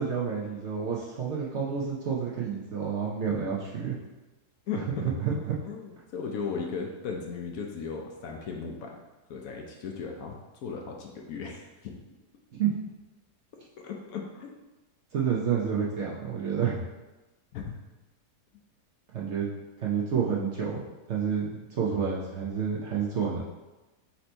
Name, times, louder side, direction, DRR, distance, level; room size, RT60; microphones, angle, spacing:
voice 1, 0.0-4.0 5.0-5.6 12.6-12.7 15.1-16.8 19.1-19.5 19.8-23.4, right 7 dB, 60° right, -4 dB, 0.8 m, -29 dB
voice 2, 5.6-9.0 9.3-10.3 10.6-12.0 13.8-14.5 17.5-17.6, left 5 dB, 70° left, 1 dB, 1.0 m, -36 dB
4.3 x 2.7 x 4.3 m, 1.1 s
omnidirectional pair, 1.7 m